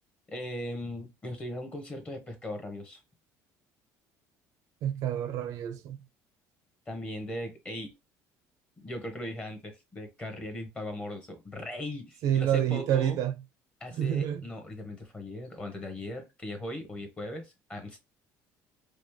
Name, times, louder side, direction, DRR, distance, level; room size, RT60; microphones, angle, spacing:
voice 1, 0.3-3.0 6.9-7.9 8.8-13.2 13.8-18.0, left 1 dB, 20° left, 1.1 m, -39 dB
voice 2, 4.8-6.0 12.2-13.3 13.9-14.4, right 10 dB, 60° right, 0.5 m, -28 dB
5.1 x 2.0 x 3.1 m
cardioid pair, 150°, 7 cm